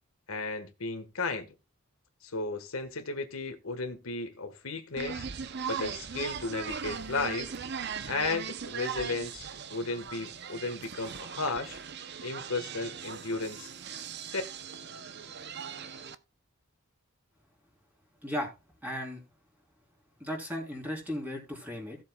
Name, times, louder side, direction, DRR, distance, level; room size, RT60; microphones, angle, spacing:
voice 1, 0.3-1.5 2.2-5.3 5.7-7.5 8.1-11.8 12.2-13.7 14.3-14.4, left 3 dB, 80° left, 1.6 m, -34 dB
sound 1, 5.0-16.2, right 7 dB, 50° right, 0.7 m, -39 dB
voice 2, 18.2-18.5 18.8-19.2 20.2-22.0, equal, 10° right, 3.7 m, -35 dB
16.5 x 7.5 x 2.3 m
head